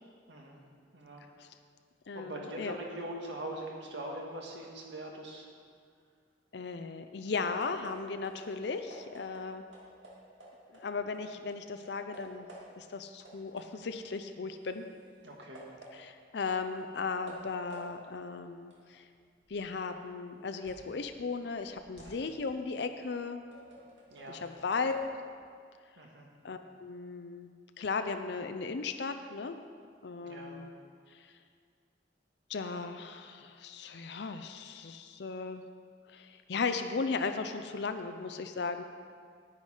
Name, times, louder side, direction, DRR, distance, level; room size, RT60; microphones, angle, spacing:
voice 1, 0.3-0.6 0.9-1.3 2.1-5.5 15.2-15.7 22.0-22.3 24.1-24.4 26.0-26.3 30.2-30.6, right 1 dB, 70° right, 0 dB, 1.7 m, -42 dB
voice 2, 2.1-2.8 6.5-9.6 10.7-12.5 12.8-14.8 15.9-19.1 19.5-23.4 24.3-25.1 26.4-27.5 27.8-29.6 30.0-30.7 31.1-31.3 32.5-35.6 36.1-38.8, left 4 dB, 65° left, 8 dB, 0.5 m, -36 dB
sound 1, 7.6-11.2 11.5-13.0 13.2-21.0 21.4-25.0, right 1 dB, 90° right, 2.1 m, -53 dB
9.8 x 9.5 x 4.9 m, 2.1 s
head